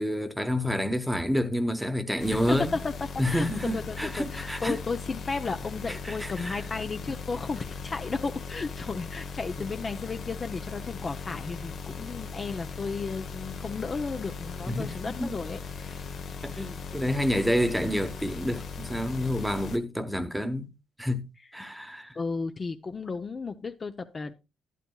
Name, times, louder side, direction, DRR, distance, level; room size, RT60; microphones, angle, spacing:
voice 1, 0.0-2.7 3.2-4.8 6.0-6.6 14.7-14.9 15.2-15.3 16.4-20.7 21.0-22.2, equal, 5° right, 1.0 m, -29 dB
sound 1, 2.2-19.8, left 5 dB, 60° left, 1.1 m, -38 dB
voice 2, 2.3-2.9 3.3-3.5 3.7-16.1 22.2-24.3, left 4 dB, 35° left, 0.6 m, -34 dB
11.0 x 11.0 x 2.3 m
cardioid pair, 90°, 0 cm